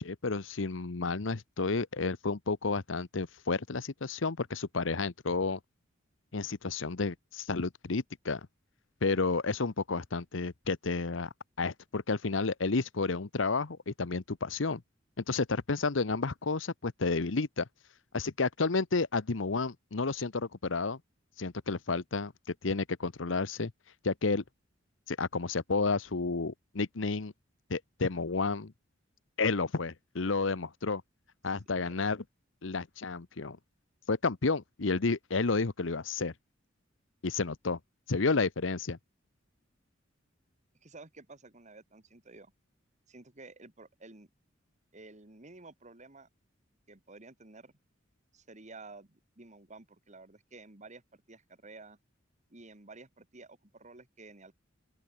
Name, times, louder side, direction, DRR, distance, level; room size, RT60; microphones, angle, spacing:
voice 1, 0.0-5.6 6.3-8.5 9.0-11.3 11.6-14.8 15.2-17.7 18.1-21.0 21.4-22.3 22.6-23.7 24.0-24.4 25.1-27.3 27.7-28.7 29.4-31.0 31.4-32.2 32.6-33.6 34.1-36.3 37.2-37.8 38.1-39.0, left 3 dB, 70° left, 0.9 m, -31 dB
voice 2, 31.4-32.0 40.8-42.5 43.1-44.3 44.9-46.3 46.9-47.7 48.3-52.0 52.5-54.6, right 3 dB, 40° right, 2.3 m, -52 dB
open air
head